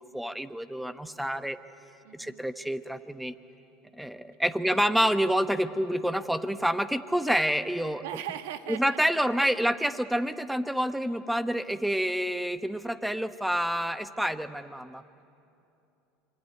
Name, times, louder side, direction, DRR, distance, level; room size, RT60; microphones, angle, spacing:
voice 1, 0.0-1.6 2.1-3.3 3.9-8.0 8.7-15.0, equal, 5° right, 11 dB, 1.1 m, -28 dB
voice 2, 2.0-2.4 4.7-5.0 8.0-9.2, right 11 dB, 80° right, 9 dB, 1.5 m, -39 dB
26.0 x 23.5 x 9.4 m, 2.8 s
hypercardioid pair, 90°, 0 cm